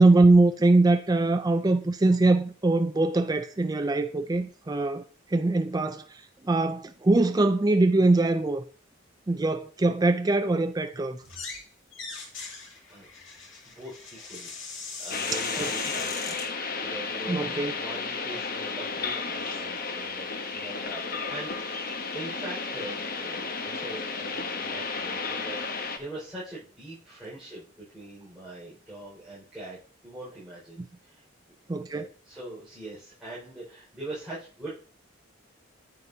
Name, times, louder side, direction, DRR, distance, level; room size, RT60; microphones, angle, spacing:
voice 1, 0.0-5.0 5.3-8.6 9.3-11.2 15.6-15.7 17.3-17.7 31.7-32.0, right 2 dB, 20° right, 0.4 m, -22 dB
sound 1, 11.2-11.6 11.9-16.5, left 4 dB, 80° left, 2.3 m, -39 dB
voice 2, 13.6-14.5 15.0-16.4 16.8-29.8 30.0-31.2 31.9-34.7, right 1 dB, 5° right, 5.0 m, -42 dB
sound 2, 15.1-26.0, left 4 dB, 50° left, 1.0 m, -33 dB
9.5 x 9.2 x 2.7 m
head